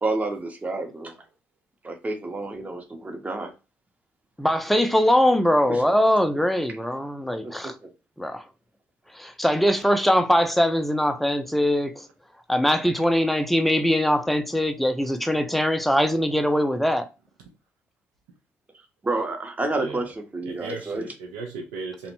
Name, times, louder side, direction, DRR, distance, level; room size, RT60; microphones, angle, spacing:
voice 1, 0.0-1.2 1.8-3.5 5.7-5.8 7.4-7.9 19.0-21.0, right 2 dB, 25° right, 0.7 m, -29 dB
voice 2, 4.4-7.7 8.2-8.4 9.1-12.1 12.5-17.1, equal, ahead, 0.4 m, -22 dB
voice 3, 19.7-20.1 20.4-22.1, right 3 dB, 90° right, 0.5 m, -36 dB
2.5 x 2.1 x 2.9 m
supercardioid pair, 60°, 6 cm